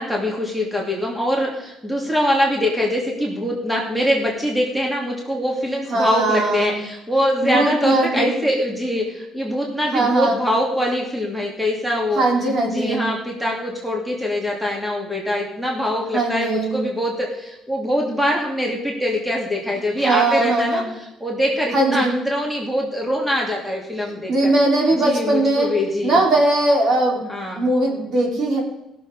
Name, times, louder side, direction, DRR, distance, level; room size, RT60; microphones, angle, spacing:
voice 1, 0.0-12.2 12.7-20.8 21.2-24.5 25.0-26.2 27.3-27.6, equal, 5° right, -2 dB, 2.7 m, -23 dB
voice 2, 5.9-6.8 7.4-8.3 9.9-10.4 12.2-13.0 16.1-16.8 20.0-20.9 21.7-22.1 24.3-25.7 26.0-27.2 27.5-28.6, right 2 dB, 55° right, -1 dB, 3.9 m, -19 dB
16.5 x 7.0 x 5.0 m, 0.86 s
cardioid pair, 115°, 0 cm